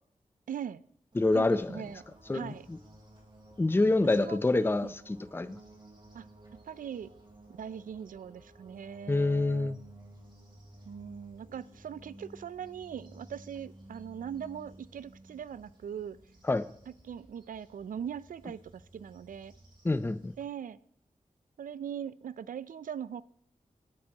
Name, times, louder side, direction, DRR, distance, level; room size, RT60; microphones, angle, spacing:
voice 1, 0.5-0.8 1.3-2.0 2.3-2.7 4.2-4.4 4.8-4.9 6.1-6.2 6.6-7.1 7.6-9.7 10.9-16.2 17.0-19.5 20.4-20.8 21.6-23.2, right 8 dB, 85° right, 0.4 m, -40 dB
sound 1, 1.1-20.4, right 1 dB, 35° right, 5.4 m, -55 dB
voice 2, 1.2-1.8 2.3-2.8 3.6-5.6 9.1-9.8 16.5-16.7 19.8-20.3, left 2 dB, 15° left, 0.5 m, -27 dB
19.0 x 8.6 x 2.9 m
cardioid pair, 60°, 14 cm